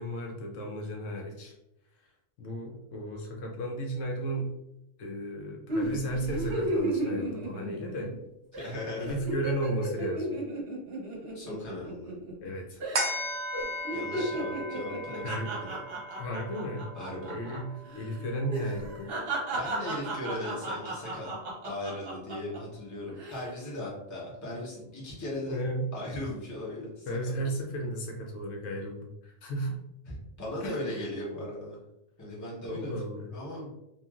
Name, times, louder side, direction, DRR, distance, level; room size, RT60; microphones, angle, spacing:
voice 1, 0.0-1.6 2.4-4.5 5.0-8.1 9.0-10.4 12.4-12.8 15.2-15.5 16.2-16.9 17.3-19.1 25.5-25.9 27.1-29.8 30.6-31.0 32.6-33.3, right 1 dB, 75° left, 1 dB, 0.9 m, -34 dB
sound 1, 5.7-8.2 8.5-8.7 9.0-12.5 12.8-13.2 13.5-17.6 17.9-18.0 18.5-22.6 23.1-23.5, right 2 dB, 50° right, 0.9 m, -34 dB
voice 2, 8.5-9.2 11.3-12.1 13.9-15.8 16.9-17.3 19.5-21.3 21.6-25.6 25.9-27.1 27.4-27.6 30.1-31.8 32.2-32.9 33.3-33.7, left 1 dB, 20° left, -5 dB, 0.6 m, -38 dB
sound 2, 12.9-19.7 20.2-20.3, equal, 90° right, 0.3 m, -38 dB
3.1 x 2.4 x 2.3 m, 0.86 s
omnidirectional pair, 1.4 m